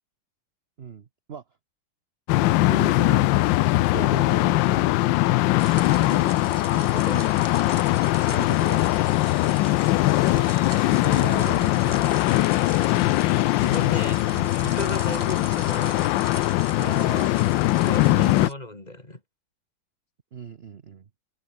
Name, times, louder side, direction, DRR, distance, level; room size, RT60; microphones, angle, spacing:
voice 1, 0.8-1.4 2.7-3.3 3.6-4.9 5.9-6.6 8.3-8.9 10.2-10.6 11.0-12.4 15.1-15.3 16.8-17.4 17.8-18.4 20.3-21.1, right 7 dB, 45° right, 0.8 m, -38 dB
sound 1, 2.3-18.5, left 17 dB, 75° left, 1.1 m, -21 dB
sound 2, 5.6-18.5, right 2 dB, 15° right, 0.9 m, -42 dB
voice 2, 6.7-7.7 13.6-16.2 17.8-19.2, left 1 dB, 20° left, 3.4 m, -35 dB
open air
omnidirectional pair, 2.3 m